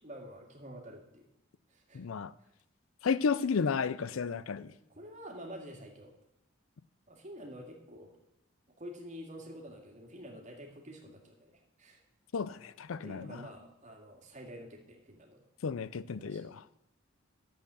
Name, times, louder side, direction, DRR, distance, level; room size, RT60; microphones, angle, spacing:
voice 1, 0.0-1.3 1.7-2.1 4.6-6.1 7.1-8.2 8.8-12.0 13.0-15.5 16.2-16.5, equal, 35° right, 2.2 m, -48 dB
voice 2, 1.9-2.3 3.0-4.7 12.3-13.4 15.6-16.6, left 5 dB, 90° left, 0.5 m, -32 dB
10.5 x 7.9 x 7.0 m
head